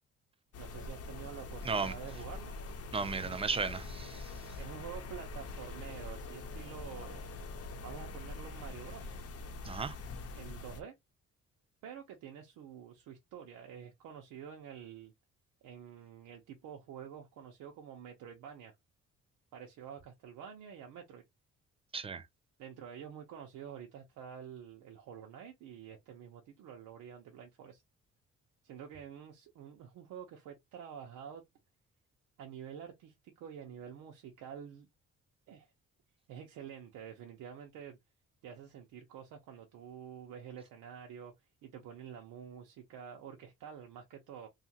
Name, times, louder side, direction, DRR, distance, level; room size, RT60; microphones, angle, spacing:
sound 1, 0.5-10.8, left 3 dB, 55° left, 0.7 m, -44 dB
voice 1, 0.6-2.6 3.0-3.5 4.6-7.3 7.8-9.2 10.3-10.9 11.8-15.1 15.6-18.7 19.5-21.2 22.6-27.8 28.6-31.4 32.4-34.9 35.5-35.7 36.3-38.0 38.4-41.3 41.6-44.5, right 8 dB, 85° right, 0.7 m, -48 dB
voice 2, 2.9-4.3 9.6-9.9 21.9-22.2, right 5 dB, 20° right, 0.4 m, -35 dB
2.8 x 2.4 x 2.7 m
cardioid pair, 90°, 30 cm